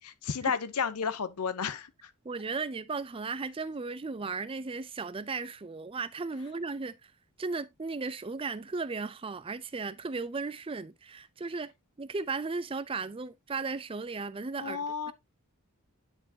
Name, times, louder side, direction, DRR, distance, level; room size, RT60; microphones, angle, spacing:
voice 1, 0.0-2.1 14.6-15.1, left 6 dB, 85° left, 0.7 m, -32 dB
voice 2, 2.2-7.1 7.4-11.7 12.0-15.1, right 4 dB, 25° right, 0.4 m, -36 dB
9.9 x 4.5 x 2.8 m
head